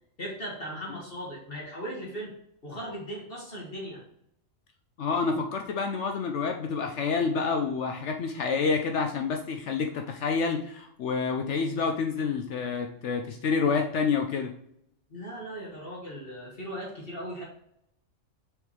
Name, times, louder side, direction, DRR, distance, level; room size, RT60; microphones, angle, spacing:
voice 1, 0.2-2.3 2.6-4.0 15.1-17.4, equal, 45° left, -4 dB, 1.9 m, -38 dB
voice 2, 5.0-14.5, left 5 dB, 65° left, 4 dB, 0.9 m, -28 dB
6.5 x 5.2 x 3.2 m, 0.73 s
omnidirectional pair, 1.3 m